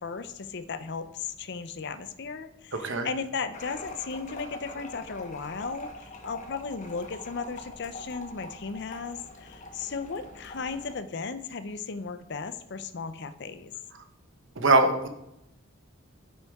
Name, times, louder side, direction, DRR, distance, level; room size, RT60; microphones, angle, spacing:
voice 1, 0.0-13.7, left 5 dB, 55° left, 12 dB, 0.5 m, -36 dB
voice 2, 2.7-3.1 14.6-15.1, right 2 dB, 60° right, 7 dB, 1.0 m, -22 dB
sound 1, 3.5-10.9, left 2 dB, 35° left, 1.1 m, -44 dB
9.1 x 8.1 x 3.6 m, 0.83 s
head